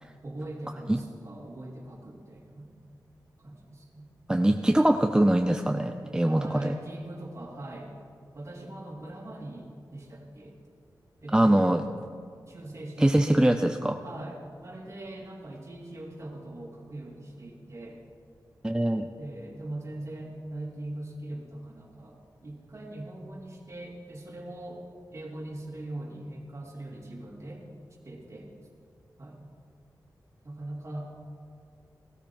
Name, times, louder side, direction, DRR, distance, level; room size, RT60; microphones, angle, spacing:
voice 1, 0.2-2.7 3.4-4.1 6.3-7.9 8.3-10.6 11.2-11.8 12.5-13.4 14.0-18.0 19.2-27.6 28.0-28.5 29.2-29.5 30.4-31.1, right 1 dB, 40° right, -1 dB, 2.9 m, -41 dB
voice 2, 4.3-6.7 11.3-11.8 13.0-14.0 18.6-19.1, right 1 dB, 10° right, 6 dB, 0.5 m, -23 dB
16.5 x 13.0 x 4.6 m, 2.4 s
wide cardioid pair, 85°, 7 cm